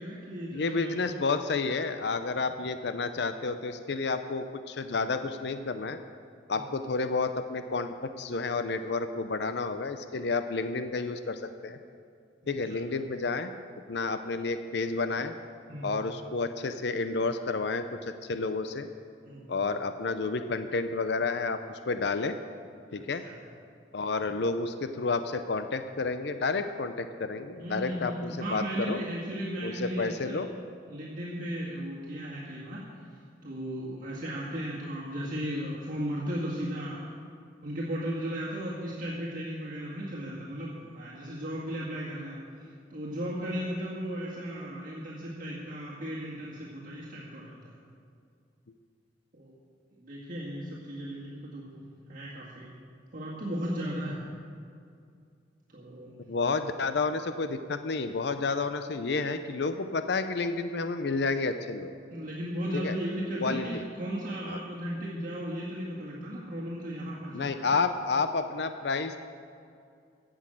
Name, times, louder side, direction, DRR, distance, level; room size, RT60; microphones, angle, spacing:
voice 1, 0.0-1.0 6.5-6.7 12.7-12.8 15.7-16.1 19.2-19.6 22.9-23.3 27.6-30.4 30.9-32.8 33.4-37.0 37.6-42.4 42.9-47.7 49.3-49.5 50.0-51.8 52.1-52.7 53.1-54.2 55.7-56.1 62.1-67.7, equal, 45° right, -6 dB, 1.9 m, -36 dB
voice 2, 0.5-6.0 6.5-11.8 12.5-13.5 13.9-15.3 15.8-18.9 19.5-21.6 21.9-22.4 22.9-23.2 23.9-29.0 29.6-30.5 56.3-61.9 62.7-63.0 63.4-63.8 64.5-64.6 67.3-69.2, left 4 dB, 65° left, 9 dB, 0.6 m, -30 dB
15.5 x 6.3 x 7.6 m, 2.3 s
head